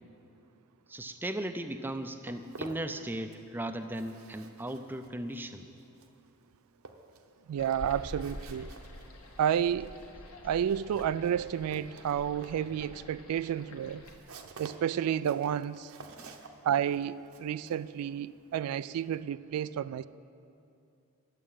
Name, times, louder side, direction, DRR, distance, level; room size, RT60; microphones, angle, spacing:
voice 1, 0.9-5.7 16.2-16.3, right 1 dB, 10° right, 0.4 m, -37 dB
Walk footsteps, 1.8-3.6 3.8-19.2, right 3 dB, 65° right, 0.8 m, -51 dB
voice 2, 7.5-8.7 9.4-9.9 10.4-14.0 14.6-15.9 16.6-20.1, right 9 dB, 85° right, 0.3 m, -31 dB
sound 1, 7.6-14.2, equal, 75° left, 1.3 m, -47 dB
11.0 x 7.5 x 8.7 m
head